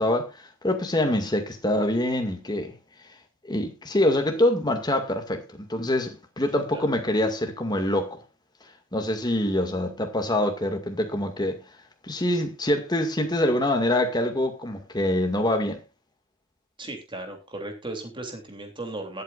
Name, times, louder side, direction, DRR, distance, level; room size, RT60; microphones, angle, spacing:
voice 1, 0.0-2.7 3.4-8.2 8.9-11.6 12.0-15.8, left 1 dB, 20° left, 2.1 m, -25 dB
voice 2, 16.8-19.2, right 2 dB, 25° right, 3.0 m, -36 dB
21.0 x 8.3 x 2.5 m
head